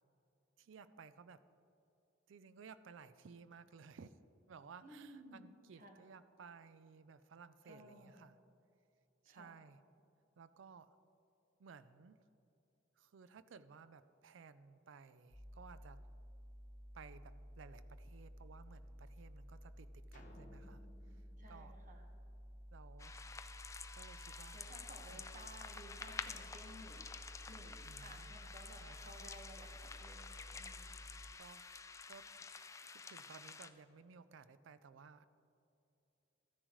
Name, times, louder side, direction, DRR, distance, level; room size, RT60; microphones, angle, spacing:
voice 1, 0.6-1.4 2.3-4.1 4.5-8.4 9.2-9.8 10.4-10.9 11.6-12.2 13.0-16.0 16.9-21.7 22.7-23.2 23.9-24.6 25.1-25.2 27.8-28.4 28.8-29.1 31.4-32.3 32.8-35.2, right 5 dB, 70° right, 14 dB, 0.4 m, -58 dB
voice 2, 4.8-6.0 7.7-8.2 9.3-9.6 21.4-22.1 24.5-27.1 27.5-30.9, right 1 dB, 45° right, 3 dB, 1.3 m, -57 dB
sound 1, 15.3-31.3, equal, 25° right, 2.6 m, -54 dB
sound 2, 20.1-22.6, left 1 dB, 40° left, 1.0 m, -62 dB
sound 3, 23.0-33.7, left 4 dB, 15° left, 0.3 m, -50 dB
14.5 x 10.0 x 3.1 m, 2.8 s
head